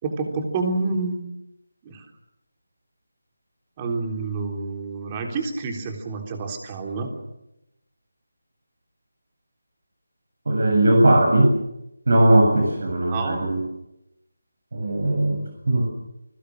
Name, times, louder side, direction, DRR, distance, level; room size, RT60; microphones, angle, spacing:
voice 1, 0.0-1.2 1.8-2.0 3.8-7.1 13.1-13.4, right 3 dB, 20° right, 3 dB, 3.7 m, -28 dB
voice 2, 10.5-11.5 12.1-13.6 14.7-15.4 15.7-15.9, right 1 dB, 65° right, 2 dB, 7.7 m, -18 dB
29.0 x 22.0 x 6.6 m, 0.86 s
figure-of-eight pair, 170°, 0 cm